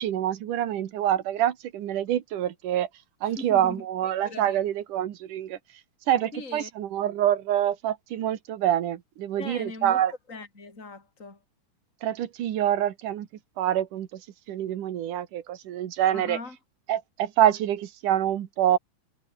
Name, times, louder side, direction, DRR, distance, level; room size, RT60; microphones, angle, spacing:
voice 1, 0.0-2.9 3.2-5.6 6.1-10.1 12.0-13.3 13.6-14.2 14.5-16.4 16.9-18.8, right 11 dB, 90° right, 3.1 m, -26 dB
voice 2, 3.2-4.6 6.3-6.7 9.4-11.4 16.1-16.6, left 3 dB, 25° left, 5.3 m, -40 dB
omnidirectional pair, 3.5 m